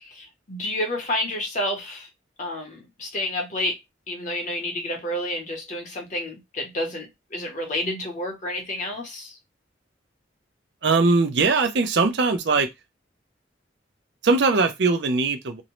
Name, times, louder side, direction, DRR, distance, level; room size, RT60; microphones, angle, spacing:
voice 1, 0.0-2.1 2.4-3.8 4.1-9.4, left 1 dB, 40° left, 0.7 m, -30 dB
voice 2, 10.8-12.7 14.2-15.6, right 4 dB, 65° right, 0.5 m, -20 dB
2.6 x 2.0 x 2.9 m
head